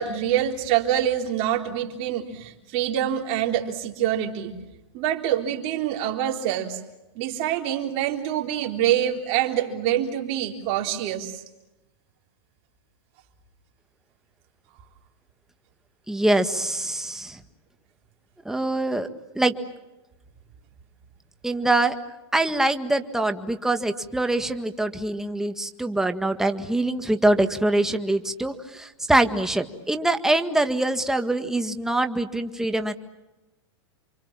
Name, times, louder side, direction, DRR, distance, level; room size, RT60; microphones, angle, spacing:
voice 1, 0.0-4.5 4.9-6.8 7.2-11.4, right 11 dB, 45° right, 4 dB, 3.7 m, -25 dB
voice 2, 16.1-17.4 18.5-19.1 19.4-19.5 21.4-22.0 22.3-32.9, right 2 dB, 5° right, 7 dB, 1.8 m, -24 dB
29.0 x 25.5 x 7.5 m, 0.99 s
supercardioid pair, 140°, 14 cm